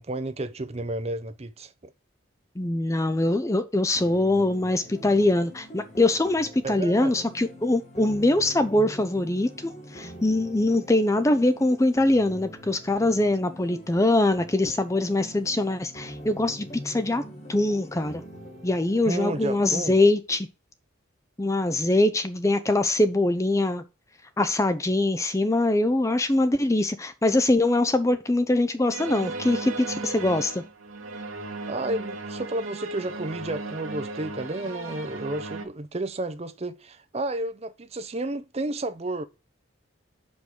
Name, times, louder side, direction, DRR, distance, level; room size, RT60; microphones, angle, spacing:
voice 1, 0.0-1.7 6.6-7.1 19.1-19.9 31.7-39.2, right 2 dB, 30° right, 0.6 m, -31 dB
voice 2, 2.6-17.2 17.5-18.2 18.6-20.5 21.4-23.8 24.4-30.6, left 2 dB, 15° left, 0.5 m, -23 dB
sound 1, 3.9-19.9, equal, 35° left, 1.8 m, -44 dB
sound 2, 28.9-35.7, right 3 dB, 85° right, 1.4 m, -36 dB
5.3 x 5.2 x 6.1 m
head